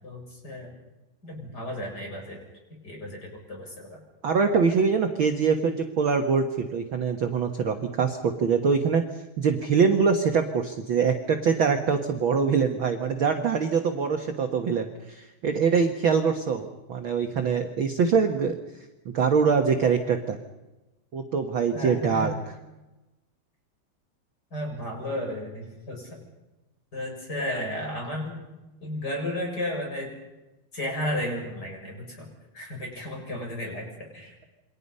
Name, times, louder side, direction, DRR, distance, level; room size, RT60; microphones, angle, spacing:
voice 1, 0.0-0.8 1.2-2.4 2.8-3.2 3.5-4.0 21.7-22.4 24.5-26.2 26.9-28.4 28.8-30.1 30.7-34.4, left 1 dB, 25° left, 0 dB, 7.3 m, -33 dB
voice 2, 4.2-9.0 9.4-18.5 19.0-20.4 21.1-22.3, right 5 dB, 60° right, 5 dB, 1.4 m, -24 dB
28.5 x 24.0 x 5.5 m, 1.0 s
omnidirectional pair, 4.2 m